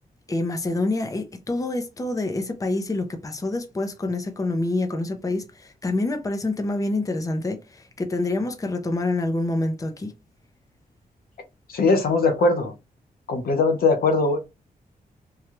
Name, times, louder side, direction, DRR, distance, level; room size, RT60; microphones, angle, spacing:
voice 1, 0.3-10.1, left 2 dB, 20° left, 0.6 m, -27 dB
voice 2, 11.7-12.7 13.3-14.4, left 3 dB, 85° left, 0.8 m, -20 dB
3.2 x 2.3 x 2.8 m
wide cardioid pair, 95°, 15 cm